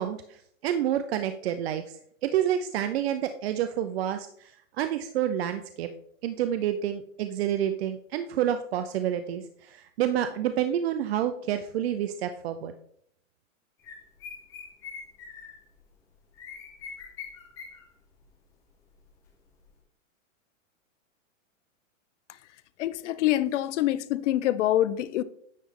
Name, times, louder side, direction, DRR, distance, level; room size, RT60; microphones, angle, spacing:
voice 1, 0.0-5.9 6.2-12.7, right 10 dB, 55° right, 0.5 m, -29 dB
sound 1, 13.8-15.8 16.4-17.9 18.1-18.3 19.1-19.2 19.6-19.7, left 6 dB, 10° left, 0.3 m, -43 dB
voice 2, 22.8-25.2, left 13 dB, 65° left, 0.5 m, -25 dB
9.3 x 3.1 x 3.6 m
hypercardioid pair, 145°, 39 cm